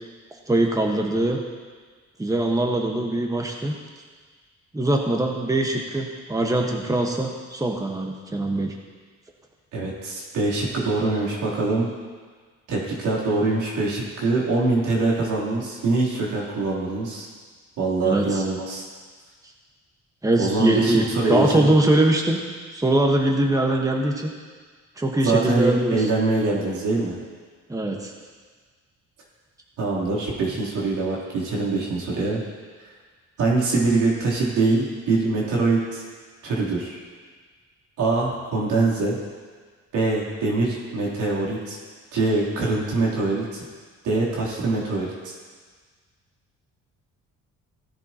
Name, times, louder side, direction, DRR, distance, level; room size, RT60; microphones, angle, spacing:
voice 1, 0.5-1.4 2.2-3.7 4.7-8.7 18.0-18.4 20.2-22.4 22.7-24.3 25.0-26.0 27.7-28.1, right 1 dB, 10° right, 1 dB, 1.4 m, -22 dB
voice 2, 9.7-11.9 12.7-17.3 17.8-18.9 20.4-21.7 25.2-27.2 29.8-32.4 33.4-36.0 36.4-37.0 38.0-39.2 39.9-41.8 42.1-43.6 44.0-45.3, right 3 dB, 85° right, -5 dB, 3.5 m, -23 dB
16.5 x 10.5 x 3.0 m, 1.5 s
cardioid pair, 90°, 30 cm